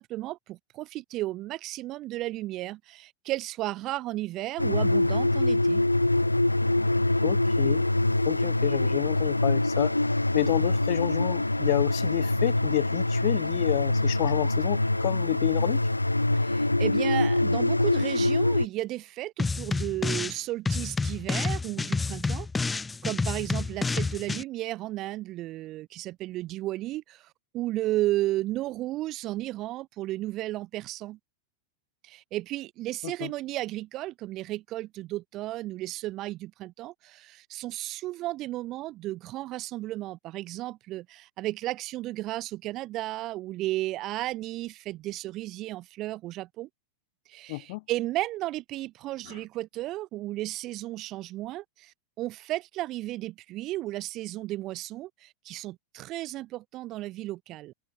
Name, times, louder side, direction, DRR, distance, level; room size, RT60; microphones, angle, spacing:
voice 1, 0.0-5.8 16.4-31.2 32.0-46.7 47.3-57.7, right 16 dB, 35° right, 0.9 m, -34 dB
sound 1, 4.6-18.7, left 2 dB, 85° left, 0.9 m, -24 dB
voice 2, 7.2-7.9 8.2-10.0 10.3-15.8 33.0-33.3 47.5-47.8, left 25 dB, 50° left, 3.3 m, -29 dB
sound 2, 19.4-20.4 20.7-24.4, left 4 dB, 10° left, 0.5 m, -29 dB
figure-of-eight pair, 90°, 0 cm